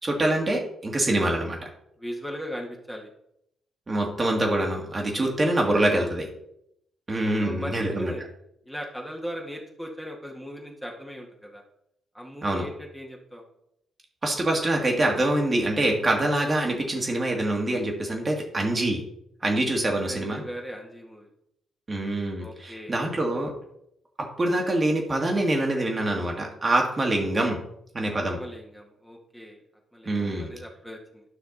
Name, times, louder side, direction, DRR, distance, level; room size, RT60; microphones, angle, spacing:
voice 1, 0.0-1.6 3.9-6.2 7.1-8.1 12.4-12.6 14.2-19.0 19.4-20.4 21.9-23.5 24.4-27.6 27.9-28.4 30.0-30.5, right 1 dB, 30° right, 1 dB, 2.2 m, -25 dB
voice 2, 2.0-3.1 5.2-6.2 7.4-8.2 8.7-11.6 12.1-13.4 19.4-21.3 22.4-22.9 28.1-29.6 29.9-31.2, equal, ahead, 0 dB, 1.9 m, -39 dB
11.5 x 5.7 x 4.1 m, 0.76 s
figure-of-eight pair, 40°, 0 cm